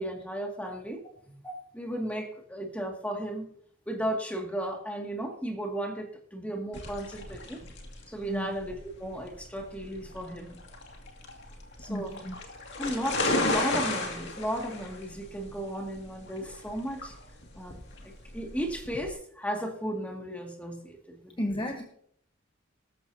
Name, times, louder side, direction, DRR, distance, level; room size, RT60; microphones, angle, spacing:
voice 1, 0.0-3.5 3.9-7.6 8.1-10.6 11.8-12.2 12.8-17.1 17.6-21.4, right 1 dB, 5° left, 1 dB, 2.2 m, -35 dB
sound 1, 6.7-19.1, left 2 dB, 55° left, 2.3 m, -34 dB
voice 2, 11.9-12.3 21.4-21.8, left 1 dB, 25° left, 2 dB, 1.1 m, -32 dB
18.5 x 13.5 x 2.8 m, 0.63 s
head